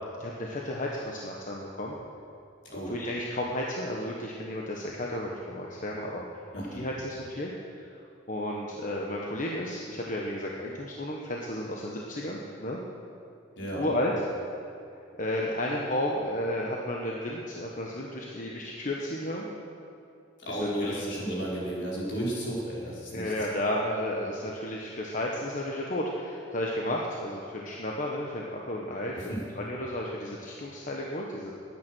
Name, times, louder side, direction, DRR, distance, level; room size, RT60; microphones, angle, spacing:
voice 1, 0.1-1.9 2.7-7.9 8.3-12.8 13.7-14.1 15.2-19.5 20.5-21.0 23.1-31.5, left 1 dB, 45° left, -2 dB, 1.3 m, -33 dB
voice 2, 2.6-3.0 6.5-6.8 13.6-13.9 20.4-23.3 29.2-29.4, right 1 dB, 70° left, -5 dB, 4.9 m, -33 dB
21.0 x 9.6 x 6.3 m, 2.5 s
head